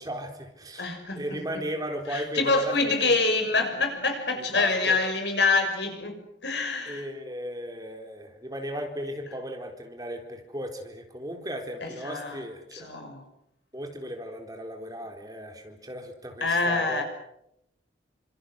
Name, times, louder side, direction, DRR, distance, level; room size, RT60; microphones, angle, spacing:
voice 1, 0.0-3.1 4.5-5.0 6.9-12.9 13.7-17.0, equal, 20° right, 4.1 m, -36 dB
voice 2, 0.8-1.4 2.1-6.2 6.4-7.0 11.8-12.4 12.7-13.2 16.4-17.0, left 3 dB, 70° left, 6.4 m, -26 dB
29.5 x 26.5 x 6.6 m
head